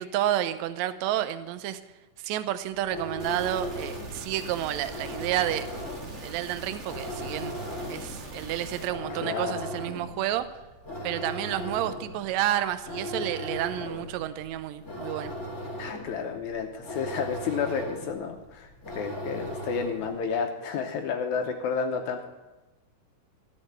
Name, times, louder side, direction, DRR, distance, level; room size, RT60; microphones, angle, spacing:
voice 1, 0.0-1.8 2.2-5.7 6.2-7.6 7.9-10.5 11.0-15.3, right 12 dB, 85° right, 12 dB, 1.6 m, -30 dB
sound 1, 2.7-20.2, equal, 25° left, 2.7 m, -38 dB
sound 2, 3.2-8.9, right 2 dB, 35° right, 1.1 m, -41 dB
voice 2, 9.2-9.6 15.8-22.2, left 6 dB, 75° left, 4 dB, 2.1 m, -31 dB
13.5 x 6.6 x 8.7 m, 1.1 s
omnidirectional pair, 3.8 m